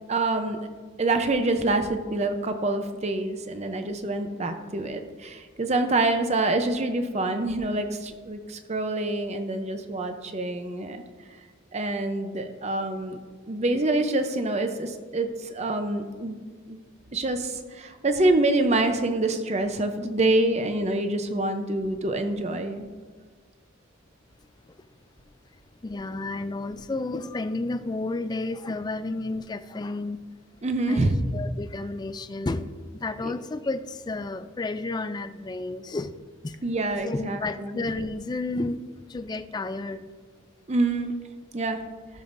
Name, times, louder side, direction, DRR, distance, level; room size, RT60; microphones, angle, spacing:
voice 1, 0.1-0.6 1.0-11.0 11.7-13.2 13.5-16.4 16.7-16.8 17.1-22.9 30.6-31.1 33.2-33.3 36.6-37.8 40.7-41.2 41.5-41.8, right 2 dB, 30° right, 7 dB, 0.6 m, -26 dB
voice 2, 25.8-30.2 30.9-36.1 36.4-36.6 37.0-40.0, left 2 dB, 20° left, 10 dB, 0.3 m, -31 dB
16.0 x 7.0 x 2.6 m, 1.5 s
head